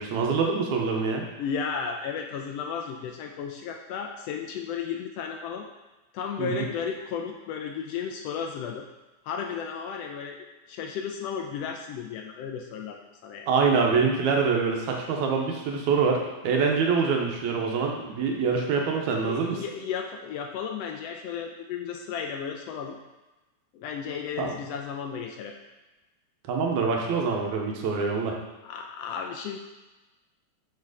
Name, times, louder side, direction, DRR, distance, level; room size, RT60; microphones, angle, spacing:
voice 1, 0.0-1.2 6.4-6.7 13.5-19.6 24.4-24.5 26.5-28.4, right 5 dB, 85° right, 1 dB, 2.2 m, -25 dB
voice 2, 1.4-5.7 6.1-8.8 9.2-10.4 10.7-13.5 19.2-23.0 23.7-25.5 28.6-29.6, left 7 dB, 80° left, 2 dB, 1.4 m, -34 dB
5.7 x 4.5 x 4.8 m, 1.1 s
omnidirectional pair, 3.3 m